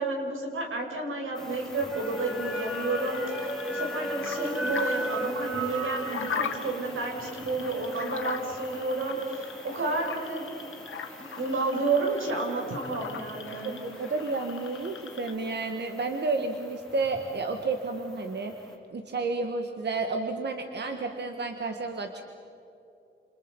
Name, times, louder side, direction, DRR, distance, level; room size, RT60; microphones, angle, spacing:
voice 1, 0.0-10.5 11.2-13.8, right 3 dB, 90° right, 1 dB, 6.0 m, -31 dB
sound 1, 1.4-18.7, equal, ahead, 3.8 m, -38 dB
sound 2, 2.2-15.3, left 7 dB, 85° left, 1.9 m, -41 dB
voice 2, 13.6-18.6 18.9-22.2, right 3 dB, 60° right, 5 dB, 1.7 m, -31 dB
29.5 x 28.5 x 5.4 m, 2.8 s
wide cardioid pair, 140°, 20 cm